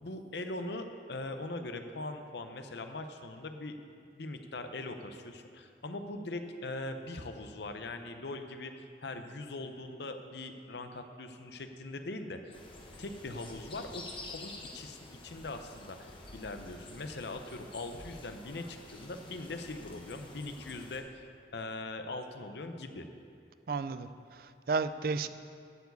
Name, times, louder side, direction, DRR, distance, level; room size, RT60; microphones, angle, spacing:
voice 1, 0.0-3.8 4.1-12.6 13.0-15.0 15.2-21.2 21.5-23.1, left 2 dB, 70° left, 7 dB, 0.7 m, -41 dB
sound 1, 12.5-21.0, left 2 dB, 30° left, 1.0 m, -49 dB
voice 2, 23.7-25.3, right 4 dB, 55° right, 12 dB, 0.4 m, -33 dB
12.0 x 4.8 x 8.2 m, 2.4 s
head